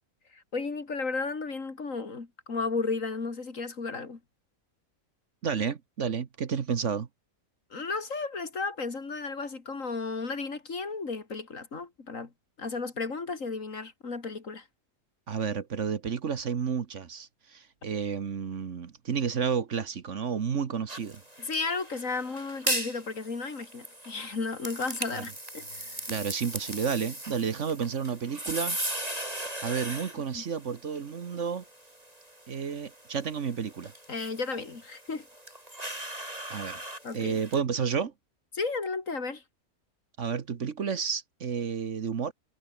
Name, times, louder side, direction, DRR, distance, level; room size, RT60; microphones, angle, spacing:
voice 1, 0.3-4.2 7.7-12.3 12.6-14.7 21.4-26.0 30.3-30.4 34.1-35.3 37.0-37.4 38.5-39.4, left 4 dB, 60° left, 3.0 m, -34 dB
voice 2, 5.4-7.1 15.3-21.2 25.1-25.2 26.1-28.8 29.6-31.6 32.5-33.9 36.5-36.8 37.1-38.1 40.2-42.3, right 6 dB, 55° right, 1.5 m, -31 dB
sound 1, 20.9-37.6, right 1 dB, 25° right, 6.4 m, -38 dB
omnidirectional pair, 1.5 m